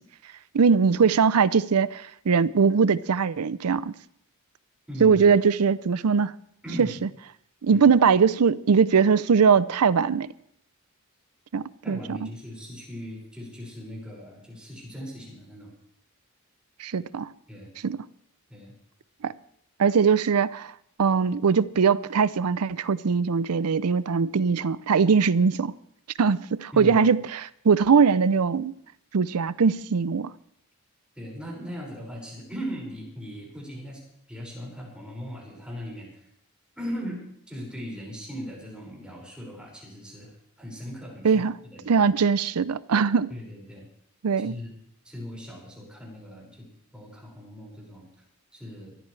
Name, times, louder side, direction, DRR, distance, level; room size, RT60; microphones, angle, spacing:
voice 1, 0.5-3.9 5.0-6.3 6.8-6.9 7.6-10.3 11.5-12.2 16.8-17.3 17.8-18.0 19.2-19.3 19.8-20.7 21.0-25.7 26.2-28.7 29.1-30.3 41.2-41.5 41.9-43.3 44.2-44.5, right 5 dB, 85° right, 0.5 m, -21 dB
voice 2, 4.9-5.2 6.6-6.9 7.7-7.9 11.8-15.7 17.5-17.7 18.5-18.7 26.7-27.0 31.2-34.0 34.3-36.3 36.8-42.1 43.3-43.8 44.4-44.7 45.0-48.1 48.5-49.0, equal, 5° right, 5.7 m, -39 dB
24.0 x 13.0 x 3.3 m
head